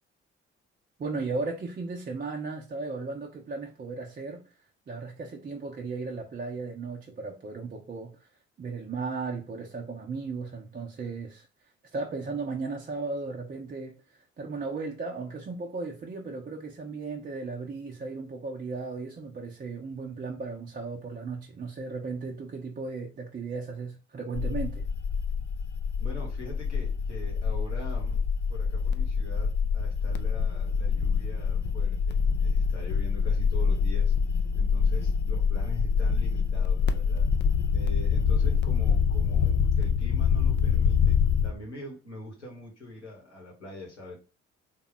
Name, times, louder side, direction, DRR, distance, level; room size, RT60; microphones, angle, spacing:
voice 1, 1.0-4.4 4.9-8.3 8.6-11.5 11.9-24.8, right 4 dB, 25° right, 0.6 m, -36 dB
sound 1, 24.4-41.5, left 6 dB, 35° left, 0.4 m, -25 dB
voice 2, 26.0-28.2 28.5-34.1 34.5-37.3 37.7-44.2, equal, 85° left, 1.1 m, -43 dB
3.5 x 2.3 x 3.8 m
figure-of-eight pair, 45°, 34 cm